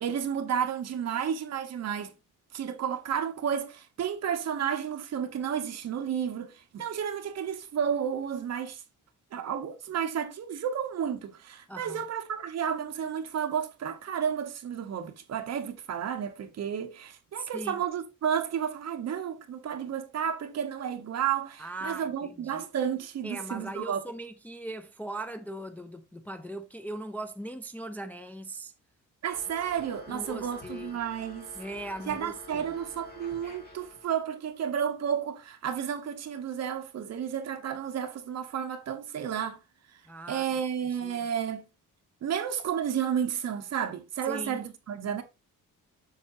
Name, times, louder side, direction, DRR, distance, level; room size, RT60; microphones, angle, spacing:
voice 1, 0.0-2.1 2.5-8.8 9.3-24.0 29.2-31.5 32.1-39.6 40.3-41.6 42.2-45.2, right 8 dB, 50° right, 1.2 m, -32 dB
voice 2, 11.7-12.0 17.4-17.8 21.6-22.7 23.2-28.7 30.1-30.9 31.5-32.6 40.1-40.5 41.0-41.3 44.3-44.6, right 1 dB, 5° left, 0.4 m, -39 dB
sound 1, 29.3-34.3, left 2 dB, 30° left, 2.1 m, -49 dB
7.5 x 6.5 x 2.7 m
cardioid pair, 160°, 32 cm